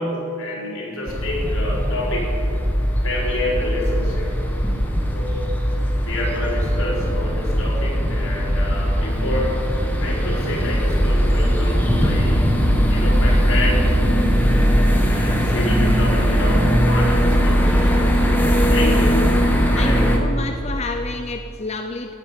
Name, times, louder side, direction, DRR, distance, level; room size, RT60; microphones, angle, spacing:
voice 1, 0.0-2.4 3.0-4.4 5.1-5.5 5.8-9.7 10.0-12.5 12.9-14.0 15.1-19.3 19.7-20.2, left 1 dB, 75° left, -3 dB, 4.6 m, -28 dB
sound 1, 1.1-20.2, equal, 10° left, 1.5 m, -19 dB
voice 2, 19.8-22.1, left 3 dB, 30° left, 6 dB, 0.6 m, -29 dB
15.5 x 9.8 x 8.9 m, 2.7 s
head